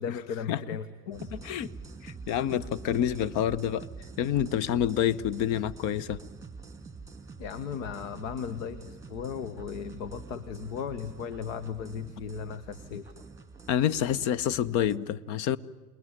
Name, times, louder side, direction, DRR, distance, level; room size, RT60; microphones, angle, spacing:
voice 1, 0.0-1.3 7.4-13.1, left 7 dB, 55° left, 1.5 m, -36 dB
sound 1, 1.1-15.0, right 4 dB, 5° right, 2.1 m, -46 dB
voice 2, 1.3-1.7 2.0-3.9 4.2-6.2 13.7-15.6, left 10 dB, 40° left, 0.9 m, -28 dB
28.5 x 20.0 x 9.8 m
hypercardioid pair, 90°, 45 cm